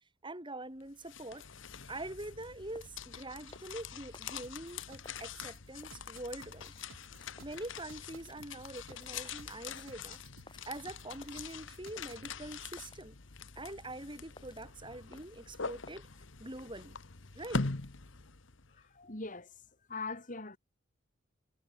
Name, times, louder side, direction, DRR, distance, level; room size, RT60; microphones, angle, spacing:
voice 1, 0.2-1.4 1.9-6.7 7.4-10.2 10.6-13.2 13.5-16.1 16.4-17.0 17.3-17.7, right 1 dB, 25° right, 5.1 m, -44 dB
sound 1, 0.8-18.8, left 4 dB, 65° left, 1.4 m, -44 dB
sound 2, 2.2-15.9, left 3 dB, 25° left, 3.5 m, -61 dB
sound 3, 4.4-12.3, right 3 dB, 85° right, 4.1 m, -57 dB
voice 2, 18.9-19.5 19.9-20.6, left 3 dB, 40° left, 3.5 m, -40 dB
head